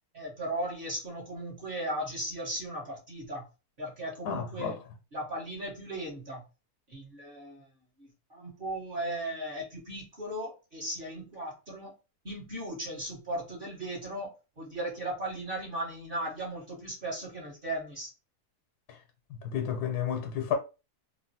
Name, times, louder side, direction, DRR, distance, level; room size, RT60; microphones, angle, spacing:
voice 1, 0.1-3.4 3.8-4.8 5.1-6.4 6.9-7.7 8.3-11.9 12.2-18.1, right 1 dB, 40° right, 1.1 m, -37 dB
voice 2, 4.2-4.8 19.4-20.6, left 8 dB, 85° left, 1.1 m, -31 dB
3.1 x 2.4 x 2.7 m
omnidirectional pair, 1.6 m